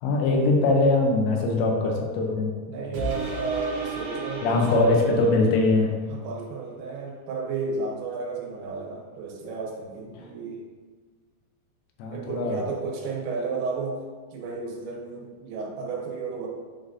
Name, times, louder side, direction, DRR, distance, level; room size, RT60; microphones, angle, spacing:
voice 1, 0.0-2.5 4.4-5.9 10.2-10.3 12.0-12.6, left 2 dB, 80° left, 1 dB, 2.9 m, -22 dB
voice 2, 2.6-4.9 6.1-10.6 12.1-14.0 14.3-16.5, right 4 dB, 80° right, -1 dB, 3.1 m, -32 dB
sound 1, 2.9-5.9 6.4-6.5, right 3 dB, 65° right, 3.2 m, -34 dB
9.6 x 3.8 x 2.6 m, 1.5 s
omnidirectional pair, 5.2 m